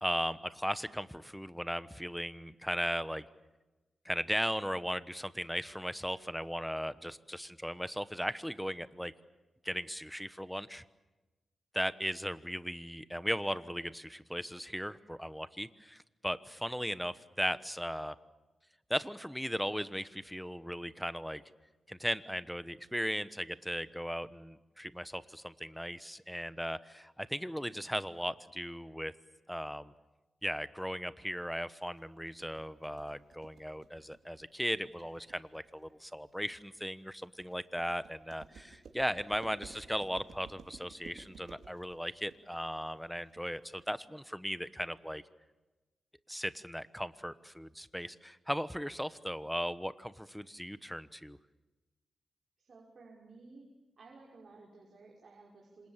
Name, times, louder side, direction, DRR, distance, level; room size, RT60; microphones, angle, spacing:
voice 1, 0.0-3.3 4.0-9.1 9.6-10.8 11.7-18.1 18.9-21.4 21.9-29.1 29.5-29.9 30.4-45.2 46.3-51.4, equal, ahead, 14 dB, 1.1 m, -37 dB
sound 1, 32.0-43.9, right 5 dB, 75° right, 4.2 m, -55 dB
voice 2, 52.6-53.6 54.0-55.9, right 3 dB, 50° right, -2 dB, 5.7 m, -55 dB
27.5 x 26.5 x 7.5 m, 1.1 s
cardioid pair, 90°, 0 cm